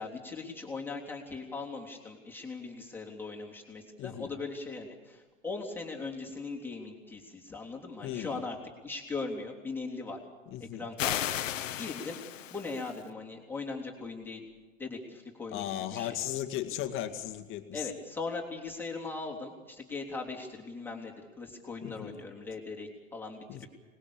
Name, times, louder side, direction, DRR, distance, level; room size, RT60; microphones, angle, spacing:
voice 1, 0.0-8.6 8.8-10.2 10.6-11.2 11.7-12.2 12.5-14.5 14.8-16.2 17.7-23.7, left 3 dB, 5° left, -1 dB, 3.4 m, -39 dB
voice 2, 4.0-4.3 8.0-8.4 10.5-10.9 15.5-17.9 21.8-22.2 23.5-23.7, left 12 dB, 30° left, 6 dB, 2.1 m, -36 dB
sound 1, 11.0-13.0, left 11 dB, 70° left, 1.3 m, -34 dB
25.0 x 20.5 x 7.1 m, 1.2 s
hypercardioid pair, 120°, 40 cm